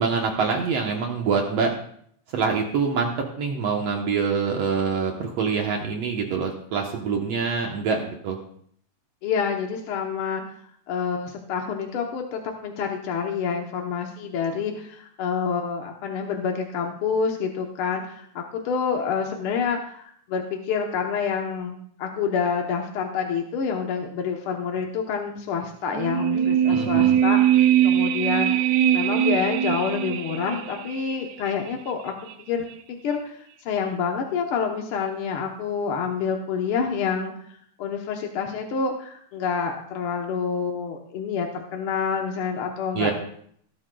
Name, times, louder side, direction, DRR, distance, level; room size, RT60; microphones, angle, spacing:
voice 1, 0.0-1.7 2.3-8.4 26.7-27.2 42.9-43.1, right 5 dB, 65° right, 2 dB, 2.0 m, -25 dB
voice 2, 9.2-10.4 10.9-28.5 28.9-32.1 32.5-32.7 33.0-43.1, left 6 dB, 65° left, 2 dB, 1.5 m, -28 dB
sound 1, 25.9-31.2 31.5-31.6, right 10 dB, 85° right, 2.1 m, -21 dB
18.5 x 11.5 x 2.3 m, 0.65 s
omnidirectional pair, 3.4 m